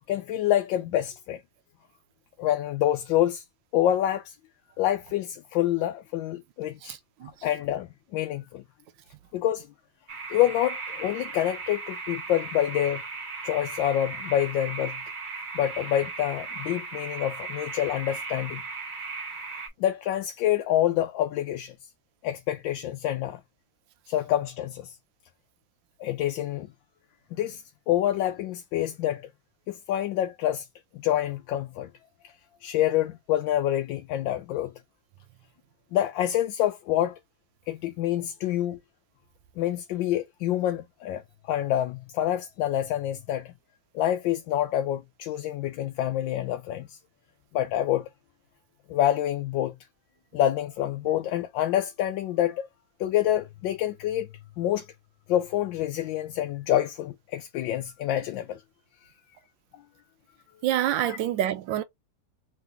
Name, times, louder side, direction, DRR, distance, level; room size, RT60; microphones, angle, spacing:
voice 1, 0.1-1.4 2.4-3.4 3.7-4.3 4.8-7.0 7.4-8.6 9.3-9.7 10.3-13.0 13.4-15.0 15.5-18.6 19.8-21.7 22.2-23.4 24.1-24.9 26.0-26.7 27.3-29.3 29.7-30.7 30.9-31.9 32.2-32.3 32.6-34.7 35.9-37.2 37.7-38.8 39.6-41.2 41.5-43.5 43.9-47.0 47.5-48.1 48.9-49.8 50.3-52.7 53.0-54.3 54.6-54.9 55.3-58.6 61.1-61.2, left 12 dB, 85° left, 1.3 m, -27 dB
voice 2, 6.9-7.3 60.6-61.8, right 12 dB, 85° right, 1.4 m, -27 dB
sound 1, 10.1-19.7, right 4 dB, 30° right, 1.0 m, -37 dB
3.8 x 2.7 x 3.4 m
omnidirectional pair, 2.0 m